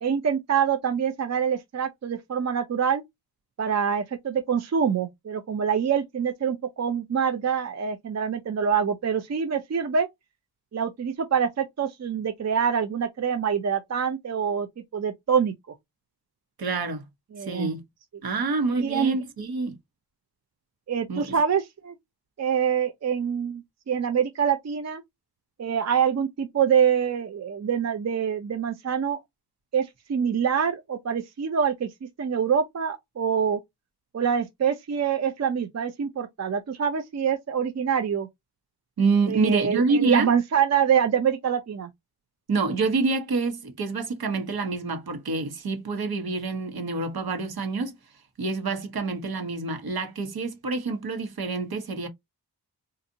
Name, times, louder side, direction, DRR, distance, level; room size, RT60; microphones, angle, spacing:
voice 1, 0.0-3.0 3.6-10.1 10.7-14.7 14.9-15.5 17.3-17.7 18.8-19.2 20.9-21.9 22.4-25.0 25.6-29.2 29.7-31.9 32.2-33.6 34.1-38.3 39.3-41.9, right 7 dB, 45° right, 0.6 m, -25 dB
voice 2, 16.6-17.0 17.5-17.8 18.2-19.8 21.1-21.4 39.0-40.3 42.5-47.9 48.4-52.1, right 4 dB, 65° right, 1.2 m, -27 dB
4.0 x 2.5 x 2.7 m
wide cardioid pair, 165°, 39 cm